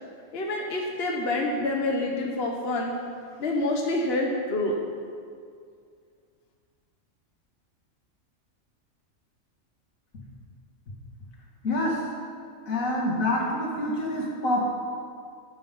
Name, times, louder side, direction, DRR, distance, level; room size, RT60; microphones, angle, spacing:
voice 1, 0.3-2.9 3.4-4.8, left 2 dB, 50° left, 0 dB, 1.2 m, -27 dB
voice 2, 11.6-12.0 12.7-14.6, left 1 dB, 75° left, -3 dB, 2.7 m, -26 dB
13.0 x 8.9 x 5.4 m, 2.2 s
omnidirectional pair, 1.4 m